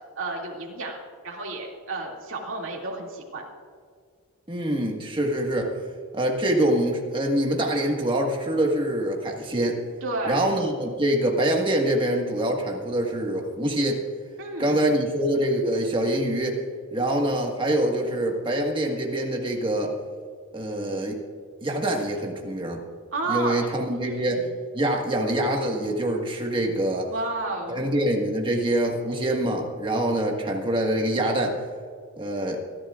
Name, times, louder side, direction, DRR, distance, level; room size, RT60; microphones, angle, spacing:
voice 1, 0.2-3.4 10.0-10.5 14.4-15.0 23.1-24.6 27.1-27.8, right 2 dB, 60° right, -1 dB, 2.5 m, -32 dB
voice 2, 4.5-5.8 6.1-9.8 10.2-14.0 14.6-16.6 16.9-19.9 20.5-21.2 21.6-22.8 23.3-24.5 24.7-27.1 27.7-31.6 32.2-32.6, right 1 dB, 25° right, 1 dB, 1.6 m, -25 dB
25.5 x 11.5 x 2.5 m, 2.1 s
head